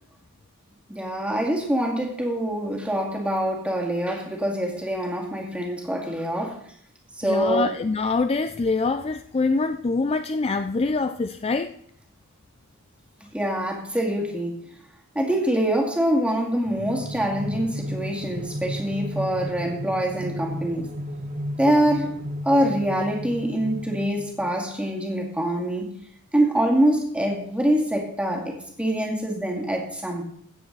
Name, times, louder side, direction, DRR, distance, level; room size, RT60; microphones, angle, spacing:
voice 1, 0.9-6.5 7.2-7.7 13.3-14.6 15.2-20.9 21.6-22.2 22.4-25.9 26.3-30.3, right 1 dB, 5° right, 2.2 m, -24 dB
voice 2, 7.2-11.7, left 3 dB, 25° left, 0.4 m, -24 dB
sound 1, 16.7-24.6, equal, 35° right, 1.4 m, -34 dB
16.0 x 7.7 x 4.0 m
head